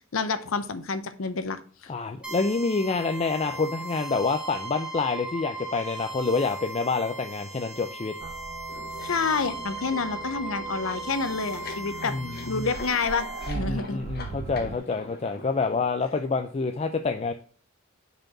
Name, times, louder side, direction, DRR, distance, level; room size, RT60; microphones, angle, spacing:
voice 1, 0.0-1.9 9.0-12.2 12.5-14.0, left 4 dB, 80° left, 11 dB, 0.7 m, -29 dB
voice 2, 1.9-8.1 12.1-12.7 13.5-17.3, left 4 dB, 30° left, 6 dB, 0.4 m, -27 dB
sound 1, 2.2-13.5, right 2 dB, 5° right, 1.7 m, -38 dB
sound 2, 8.2-14.8, right 5 dB, 40° right, 0.4 m, -40 dB
sound 3, 8.7-15.8, left 3 dB, 50° left, 1.2 m, -44 dB
5.1 x 4.6 x 5.9 m, 0.44 s
head